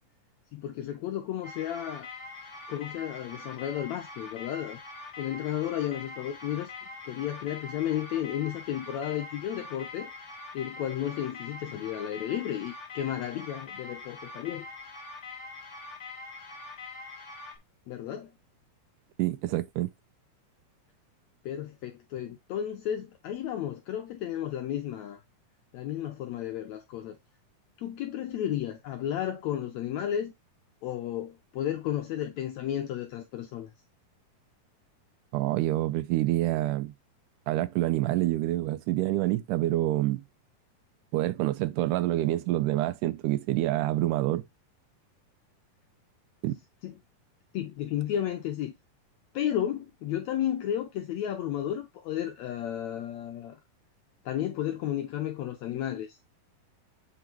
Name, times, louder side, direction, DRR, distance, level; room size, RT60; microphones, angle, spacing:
voice 1, 0.5-2.1 2.7-4.8 5.2-6.7 7.0-10.1 10.5-14.6 17.9-18.3 21.4-25.2 25.7-27.2 27.8-30.3 30.8-33.7 46.5-46.6 46.8-46.9 47.5-48.7 49.3-53.6 54.2-56.1, left 11 dB, 80° left, 1.6 m, -33 dB
sound 1, 1.4-17.6, left 3 dB, 30° left, 1.5 m, -43 dB
voice 2, 19.2-19.9 35.3-36.9 37.5-40.2 41.1-44.4 46.4-46.6, right 16 dB, 80° right, 1.9 m, -27 dB
8.0 x 3.7 x 4.4 m
omnidirectional pair, 4.0 m